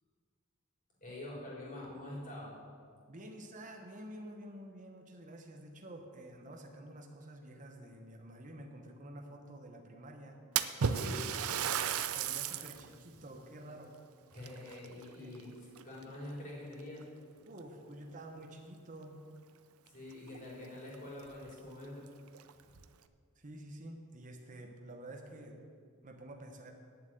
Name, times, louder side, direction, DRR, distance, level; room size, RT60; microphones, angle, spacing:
voice 1, 1.0-2.5 10.8-11.3 14.3-15.5 15.8-17.0 19.9-22.1, left 1 dB, 40° left, -5 dB, 3.6 m, -45 dB
voice 2, 3.1-10.4 11.0-11.2 12.2-14.0 15.2-15.5 17.4-19.2 23.4-25.6 26.0-26.7, right 1 dB, 35° right, 3 dB, 1.0 m, -49 dB
Splash splatter, 10.6-12.9 13.3-13.4 14.4-15.4 15.8-16.2 17.0-17.1 17.6-17.7 19.9-20.0 20.3-20.4 20.9-21.0 21.4-21.5 22.3-22.8, right 8 dB, 75° right, 0.5 m, -34 dB
8.9 x 7.3 x 8.9 m, 2.1 s
head